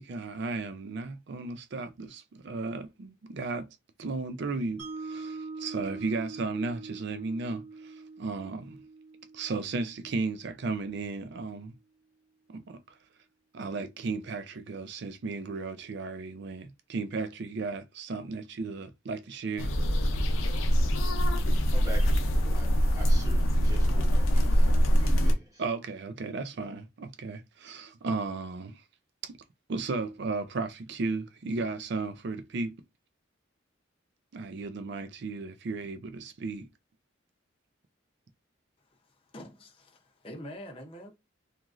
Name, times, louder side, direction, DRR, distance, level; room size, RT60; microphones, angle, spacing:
voice 1, 0.0-3.7 4.0-8.8 9.3-11.7 12.5-12.8 13.5-19.7 25.6-28.8 29.2-29.4 29.7-32.7 34.3-36.7, right 3 dB, 60° right, 0.4 m, -35 dB
Mallet percussion, 4.8-11.0, right 3 dB, 85° right, 1.3 m, -43 dB
sound 1, 19.6-25.3, equal, 90° left, 0.6 m, -24 dB
voice 2, 21.7-25.6, right 1 dB, 20° right, 1.0 m, -44 dB
voice 3, 38.9-41.2, equal, 25° left, 0.6 m, -45 dB
2.9 x 2.5 x 2.4 m
head